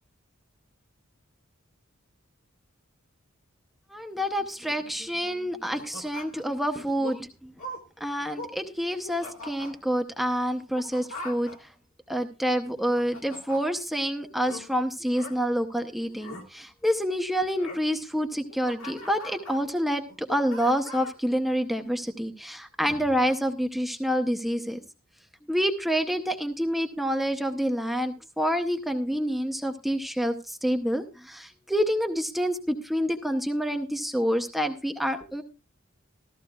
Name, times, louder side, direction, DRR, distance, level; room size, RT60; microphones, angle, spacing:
voice 1, 3.9-7.5 8.0-11.7 12.1-24.8 25.5-35.4, equal, ahead, 5 dB, 0.8 m, -28 dB
sound 1, 5.7-6.5 6.9-7.2 7.6-7.8 8.2-8.5 8.9-9.7 10.6-11.6 12.6-13.6 14.4-14.6 15.1-15.3 16.1-16.4 17.6-17.8 18.3-19.6 20.1-21.2, left 1 dB, 70° left, 2.0 m, -41 dB
14.5 x 14.0 x 2.3 m, 0.31 s
head